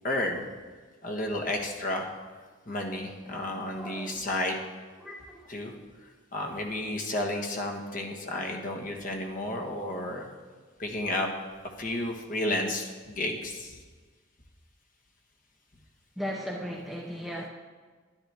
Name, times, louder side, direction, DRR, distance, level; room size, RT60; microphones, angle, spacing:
voice 1, 0.0-0.4 1.0-2.1 2.7-4.6 5.5-5.7 6.3-10.3 10.8-11.3 11.8-13.8, left 1 dB, 40° left, 1 dB, 1.3 m, -32 dB
voice 2, 3.6-4.2 5.0-5.4 16.2-17.5, equal, ahead, -1 dB, 0.6 m, -37 dB
11.5 x 10.5 x 3.4 m, 1.4 s
head